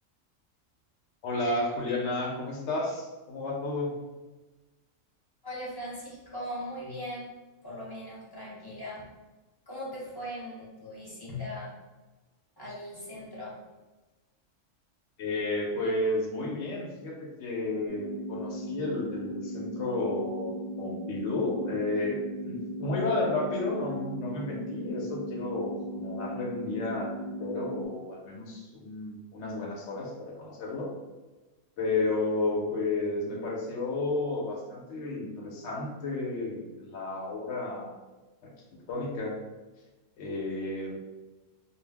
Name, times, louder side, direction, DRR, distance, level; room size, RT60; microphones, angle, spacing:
voice 1, 1.2-4.0 15.2-22.2 22.4-30.9 31.8-38.0 38.4-39.4 40.2-40.9, left 2 dB, 70° left, -2 dB, 0.9 m, -32 dB
voice 2, 5.4-7.3 7.6-9.1 9.7-11.7 12.6-13.6, left 1 dB, 25° left, -7 dB, 0.5 m, -39 dB
sound 1, 17.9-27.9, equal, 50° right, 0.6 m, -37 dB
2.3 x 2.0 x 3.3 m, 1.2 s
omnidirectional pair, 1.3 m